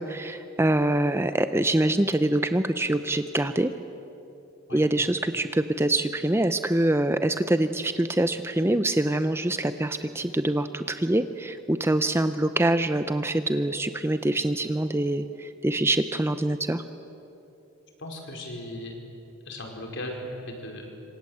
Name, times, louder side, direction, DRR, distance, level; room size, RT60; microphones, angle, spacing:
voice 1, 0.0-3.7 4.7-16.8, right 1 dB, 10° right, 10 dB, 0.6 m, -25 dB
voice 2, 18.0-18.9 19.4-20.9, left 1 dB, 55° left, 1 dB, 4.9 m, -37 dB
27.5 x 25.5 x 8.0 m, 3.0 s
head